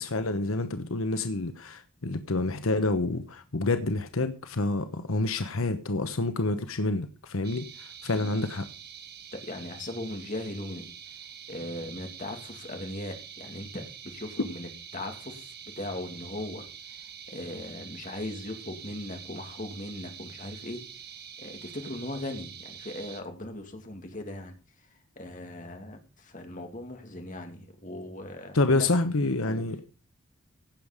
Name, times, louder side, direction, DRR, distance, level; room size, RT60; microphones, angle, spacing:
voice 1, 0.0-8.6 28.5-29.9, left 2 dB, 85° left, 1.1 m, -28 dB
sound 1, 7.4-23.2, right 8 dB, 50° right, 1.7 m, -46 dB
voice 2, 9.3-10.9 11.5-15.5 15.8-16.7 17.3-20.8 21.4-24.5 25.2-28.9 29.4-29.7, left 1 dB, 40° left, 2.6 m, -38 dB
16.0 x 7.3 x 5.2 m
head